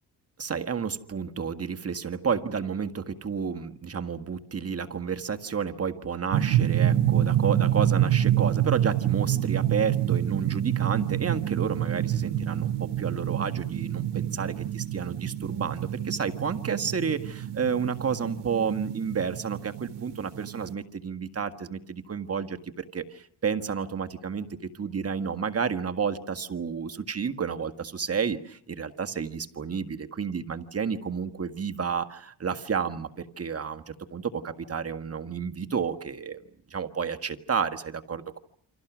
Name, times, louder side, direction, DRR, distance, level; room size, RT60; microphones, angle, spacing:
voice 1, 0.4-24.5 24.7-36.4 36.7-38.4, right 6 dB, 35° right, 7 dB, 1.6 m, -31 dB
sound 1, 6.3-20.7, right 11 dB, 85° right, 1.2 m, -27 dB
29.0 x 25.0 x 6.2 m, 0.65 s
cardioid pair, 100°, 40 cm